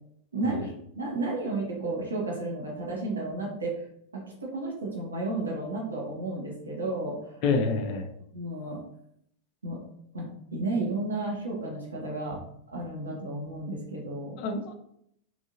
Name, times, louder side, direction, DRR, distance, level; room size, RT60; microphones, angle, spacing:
voice 1, 0.3-3.8 4.1-7.4 8.3-8.8 9.6-9.8 10.1-12.4 12.7-14.4, right 2 dB, 75° right, -2 dB, 1.2 m, -32 dB
voice 2, 7.4-8.1 14.4-14.8, left 4 dB, 45° left, 4 dB, 0.6 m, -27 dB
3.6 x 3.1 x 2.7 m, 0.72 s
figure-of-eight pair, 90°, 0 cm